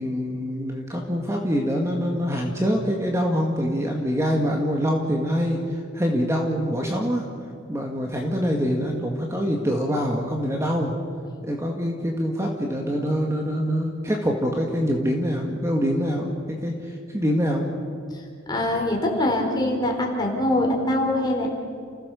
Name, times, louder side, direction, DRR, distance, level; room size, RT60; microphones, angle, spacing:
voice 1, 0.0-7.2 7.7-10.9 11.4-17.7, equal, 15° right, 1 dB, 1.8 m, -25 dB
voice 2, 18.5-21.5, left 1 dB, 20° left, 0 dB, 4.1 m, -23 dB
30.0 x 16.0 x 7.0 m, 2.3 s
head